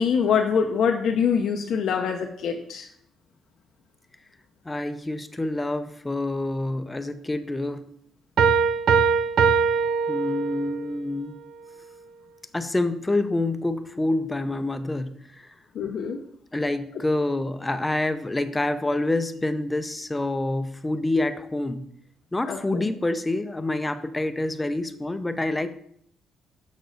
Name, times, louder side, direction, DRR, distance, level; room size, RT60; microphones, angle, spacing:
voice 1, 0.0-2.9 15.7-16.2 22.5-22.9, left 6 dB, 70° left, 2 dB, 0.7 m, -24 dB
voice 2, 4.6-7.9 10.1-11.3 12.5-15.5 16.5-21.9 22.3-25.7, left 2 dB, 15° left, 10 dB, 0.6 m, -27 dB
Piano, 8.4-10.9, right 5 dB, 70° right, 0.6 m, -21 dB
6.7 x 6.2 x 4.0 m, 0.67 s
cardioid pair, 90°, 0 cm